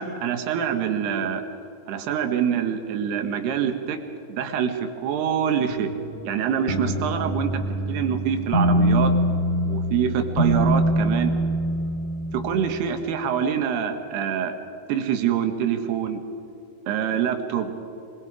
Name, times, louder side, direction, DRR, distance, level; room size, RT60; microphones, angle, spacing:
voice 1, 0.0-1.4 1.9-4.0 4.3-5.9 6.2-7.6 7.9-9.2 9.7-11.3 12.3-14.5 14.9-16.2 16.9-17.7, right 8 dB, 85° right, 6 dB, 3.4 m, -25 dB
sound 1, 5.7-13.0, equal, 45° left, 2.1 m, -24 dB
24.5 x 21.5 x 4.9 m, 3.0 s
omnidirectional pair, 4.6 m